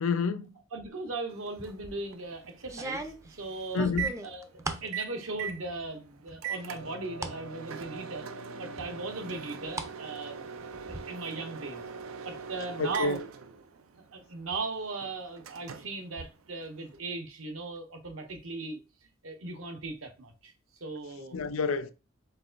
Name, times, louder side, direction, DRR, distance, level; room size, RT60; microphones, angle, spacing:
voice 1, 0.0-0.5 3.7-4.1 12.8-13.2 21.3-21.9, left 4 dB, 80° left, 0.5 m, -28 dB
voice 2, 0.7-3.9 4.2-8.3 8.6-11.8 12.2-13.2 14.1-18.8 19.2-20.5 20.8-21.4, right 3 dB, 70° right, 1.0 m, -38 dB
Microwave oven, 1.3-17.0, right 6 dB, 90° right, 0.5 m, -42 dB
sound 1, 1.6-2.0 2.6-4.9 5.3-5.9 6.3-7.4 7.8-7.9 8.8-9.9 10.2-11.0, right 2 dB, 15° right, 0.5 m, -39 dB
4.6 x 3.8 x 2.5 m
head